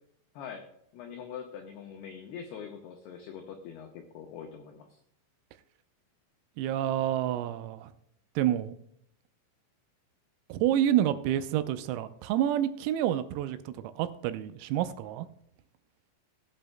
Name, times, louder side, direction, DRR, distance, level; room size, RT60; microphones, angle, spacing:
voice 1, 0.3-0.7 0.9-5.0, left 7 dB, 90° left, 3 dB, 2.2 m, -43 dB
voice 2, 6.6-7.9 8.4-8.7 10.5-15.3, right 11 dB, 85° right, 11 dB, 3.3 m, -28 dB
18.5 x 8.5 x 2.2 m, 0.75 s
omnidirectional pair, 6.0 m